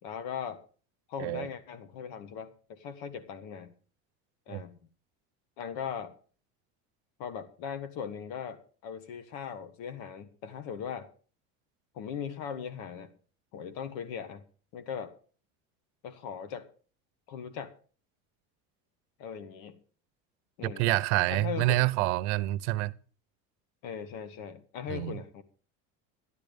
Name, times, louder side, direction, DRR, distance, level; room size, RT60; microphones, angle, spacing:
voice 1, 0.0-0.6 1.1-3.7 4.5-4.8 5.6-6.1 7.2-11.1 11.9-13.1 13.5-14.4 14.7-15.1 16.0-16.7 17.3-17.7 19.2-19.8 20.6-20.9 21.3-21.8 23.8-25.4, left 7 dB, 70° left, 1.5 m, -39 dB
voice 2, 20.6-22.9 24.9-25.2, right 18 dB, 85° right, 0.8 m, -27 dB
12.5 x 11.5 x 5.2 m
cardioid pair, 160°, 33 cm